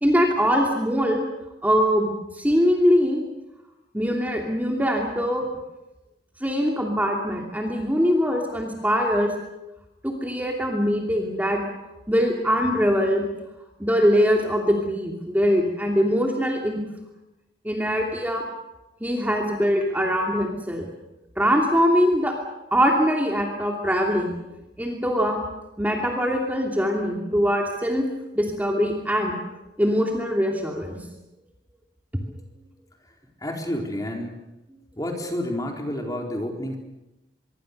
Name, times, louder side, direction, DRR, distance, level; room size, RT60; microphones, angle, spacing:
voice 1, 0.0-1.2 1.6-3.2 3.9-5.4 6.4-9.3 10.0-11.6 12.1-13.2 13.8-16.8 17.6-18.4 19.0-20.8 21.4-22.3 22.7-24.3 24.8-25.4 25.8-28.0 28.3-29.4 29.8-31.0, equal, 10° right, 1 dB, 2.8 m, -22 dB
voice 2, 33.4-34.3 35.0-36.8, left 1 dB, 20° left, 2 dB, 4.1 m, -29 dB
24.5 x 23.5 x 6.7 m, 0.98 s
head